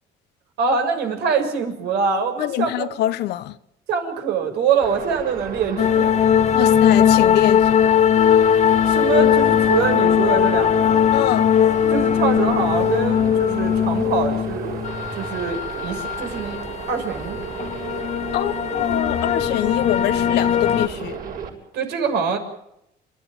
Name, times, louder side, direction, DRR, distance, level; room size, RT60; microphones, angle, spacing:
voice 1, 0.6-2.9 3.9-6.1 6.6-6.7 8.9-11.0 11.9-14.8 15.1-16.6 16.9-17.4 21.7-22.4, right 5 dB, 75° right, 6.5 m, -24 dB
voice 2, 2.4-3.6 6.5-8.0 11.1-11.5 18.3-21.2, left 14 dB, 80° left, 1.2 m, -24 dB
sound 1, 4.8-21.5, right 6 dB, 60° right, 7.5 m, -34 dB
sound 2, 5.8-20.9, left 9 dB, 40° left, 0.9 m, -19 dB
30.0 x 13.5 x 9.4 m
cardioid pair, 110°, 17 cm